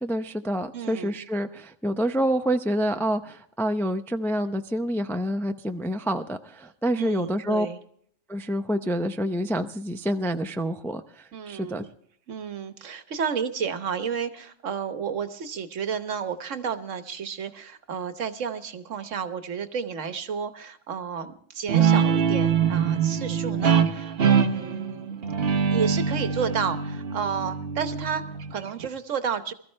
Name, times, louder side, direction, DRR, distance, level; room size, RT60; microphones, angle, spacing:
voice 1, 0.0-7.7 8.3-11.9, equal, 5° left, 7 dB, 0.3 m, -27 dB
voice 2, 0.7-1.1 7.0-7.8 11.3-11.9 12.3-25.2 25.7-29.5, right 7 dB, 75° right, 10 dB, 1.4 m, -31 dB
Guitar, 21.7-28.9, right 7 dB, 50° right, 1.0 m, -24 dB
22.0 x 14.0 x 3.2 m, 0.63 s
omnidirectional pair, 1.3 m